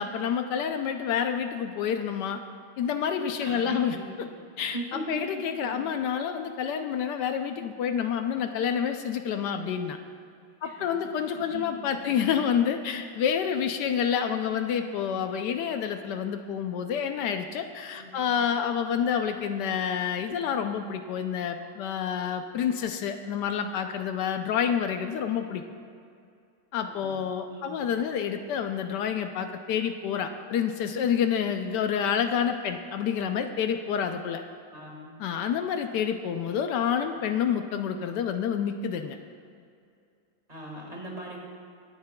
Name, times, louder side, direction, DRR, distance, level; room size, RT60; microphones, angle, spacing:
voice 1, 0.0-2.4 2.8-4.3 4.6-4.8 5.1-10.0 10.6-25.6 26.7-34.4 35.2-39.2, left 8 dB, 75° left, 7 dB, 1.2 m, -28 dB
voice 2, 3.4-4.4 4.7-5.2 5.6-6.0 10.6-10.9 11.5-12.3 17.9-18.2 27.0-27.1 27.4-27.8 34.7-35.2 40.5-41.4, right 2 dB, 25° right, -2 dB, 1.8 m, -40 dB
23.0 x 9.4 x 2.2 m, 2.4 s
omnidirectional pair, 1.9 m